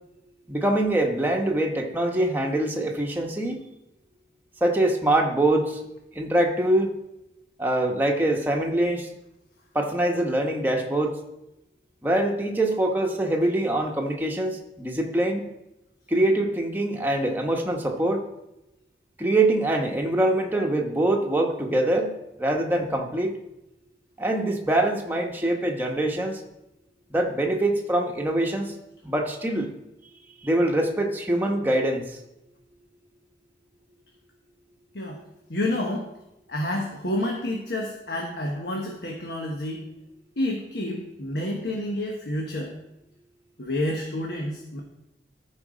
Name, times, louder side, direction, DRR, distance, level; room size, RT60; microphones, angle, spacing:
voice 1, 0.5-3.6 4.6-5.8 6.1-6.9 7.6-9.1 9.7-11.2 12.0-15.4 16.1-18.2 19.2-23.3 24.2-26.4 27.1-28.7 29.0-29.7 30.4-32.0, right 1 dB, 10° right, 1 dB, 1.0 m, -24 dB
voice 2, 35.5-36.1 36.5-39.8 40.4-42.7 43.6-44.8, left 1 dB, 70° left, 0 dB, 1.1 m, -29 dB
14.0 x 4.7 x 5.0 m, 0.91 s
head